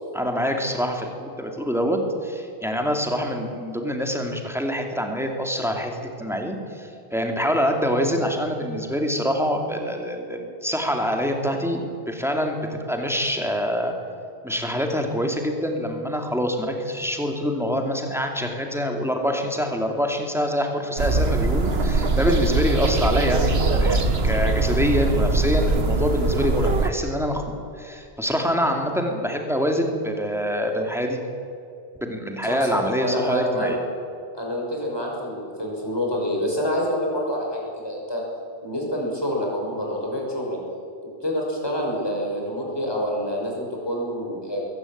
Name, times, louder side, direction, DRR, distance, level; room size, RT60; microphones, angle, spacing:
voice 1, 0.1-12.6 12.9-13.9 14.4-31.2 32.0-33.8, equal, ahead, 3 dB, 2.8 m, -25 dB
sound 1, 21.0-26.9, right 3 dB, 65° right, 1.7 m, -22 dB
voice 2, 32.5-33.7 34.3-38.2 38.6-40.6 41.2-44.6, equal, 20° left, -2 dB, 6.2 m, -27 dB
22.0 x 17.5 x 8.9 m, 2.5 s
omnidirectional pair, 1.1 m